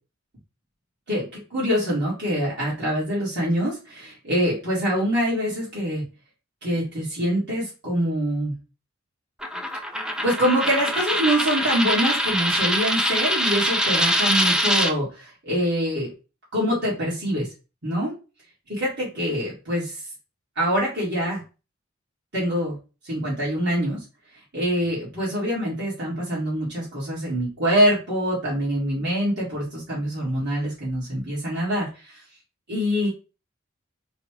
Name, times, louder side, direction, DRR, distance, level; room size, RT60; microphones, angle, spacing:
voice 1, 1.1-6.0 6.6-8.5 10.2-16.1 16.5-17.5 17.8-18.1 18.7-20.0 20.6-21.4 22.3-22.8 23.0-24.0 24.5-31.9 32.7-33.1, equal, 60° right, -7 dB, 2.3 m, -25 dB
Coin (dropping), 9.4-14.9, equal, 5° right, 0.4 m, -23 dB
4.0 x 2.4 x 4.6 m, 0.31 s
head